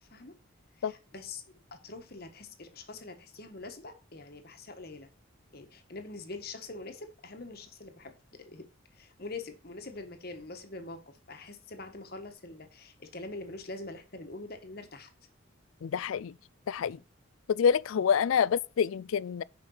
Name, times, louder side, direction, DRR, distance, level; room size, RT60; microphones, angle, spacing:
voice 1, 0.0-0.3 0.8-1.4 1.7-5.1 5.5-8.7 8.9-15.1, left 3 dB, 50° left, 1.3 m, -44 dB
voice 2, 15.8-16.3 16.7-17.0 17.5-19.4, left 7 dB, 80° left, 0.4 m, -27 dB
6.8 x 5.1 x 6.3 m
head